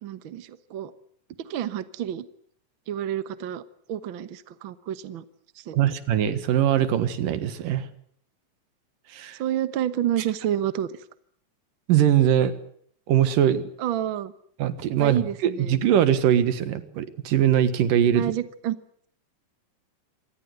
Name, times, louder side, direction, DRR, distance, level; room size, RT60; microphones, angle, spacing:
voice 1, 0.0-0.9 1.4-2.3 2.9-3.6 3.9-5.2 5.6-5.8 9.4-11.0 13.8-14.3 15.0-15.7 18.1-18.8, right 11 dB, 60° right, 13 dB, 1.3 m, -29 dB
voice 2, 5.7-7.9 9.1-9.4 11.9-12.5 13.1-13.7 14.6-18.2, right 10 dB, 85° right, 12 dB, 3.2 m, -22 dB
26.5 x 18.5 x 8.0 m, 0.63 s
omnidirectional pair, 3.8 m